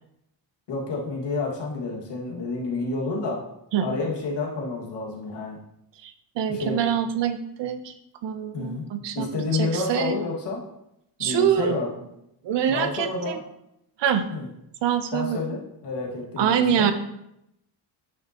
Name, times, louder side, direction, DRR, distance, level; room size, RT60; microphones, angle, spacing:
voice 1, 0.7-3.4 3.8-5.6 6.5-6.8 8.5-8.8 9.1-10.6 11.2-11.9 12.7-13.4 14.3-14.5 15.1-16.9, left 3 dB, 65° left, -2 dB, 2.1 m, -29 dB
voice 2, 6.0-7.9 8.2-10.2 11.2-11.9 12.4-13.4 14.0-14.3 14.8-15.4 16.4-16.9, right 9 dB, 70° right, 9 dB, 0.8 m, -25 dB
10.5 x 5.4 x 3.0 m, 0.81 s
cardioid pair, 130°, 45 cm